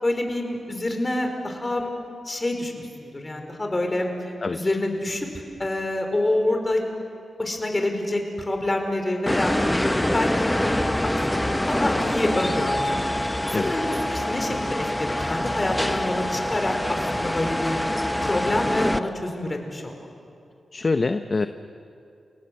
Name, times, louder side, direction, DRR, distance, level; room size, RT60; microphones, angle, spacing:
voice 1, 0.0-1.9 2.2-2.7 3.0-4.1 4.5-5.3 5.6-6.8 7.4-9.6 10.1-10.7 11.3-17.8 18.2-19.9, left 1 dB, 30° left, 4 dB, 4.9 m, -27 dB
voice 2, 4.4-4.7 13.5-13.7 20.7-21.5, left 3 dB, 45° left, 9 dB, 0.9 m, -25 dB
sound 1, 9.3-19.0, left 1 dB, 10° left, 1.0 m, -25 dB
29.0 x 18.5 x 8.1 m, 2.5 s
cardioid pair, 50°, 0 cm